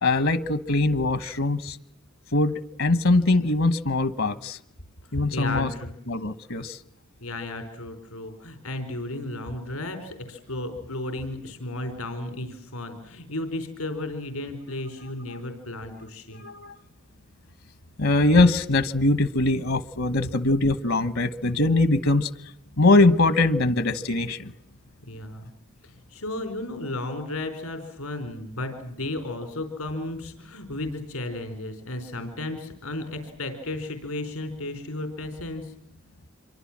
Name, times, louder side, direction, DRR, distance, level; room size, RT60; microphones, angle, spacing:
voice 1, 0.0-1.8 2.3-2.5 2.8-4.6 5.1-5.7 6.1-6.8 16.4-16.7 18.0-22.3 22.8-24.5, left 2 dB, 70° left, 14 dB, 1.3 m, -22 dB
voice 2, 5.1-5.9 7.2-16.4 25.0-25.5 25.8-35.7, left 2 dB, 90° left, 8 dB, 4.5 m, -34 dB
27.0 x 23.5 x 7.5 m, 0.72 s
head